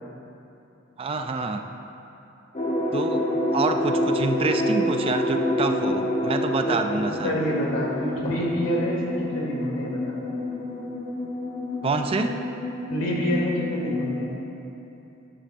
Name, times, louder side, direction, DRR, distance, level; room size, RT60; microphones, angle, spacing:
voice 1, 1.0-1.7 2.9-7.4 11.8-12.3, right 3 dB, 25° right, 6 dB, 0.3 m, -27 dB
sound 1, 2.5-14.3, left 1 dB, 30° left, 0.9 m, -28 dB
voice 2, 7.2-10.2 12.9-14.4, equal, 70° left, -3 dB, 1.9 m, -27 dB
11.0 x 10.0 x 2.5 m, 2.9 s
head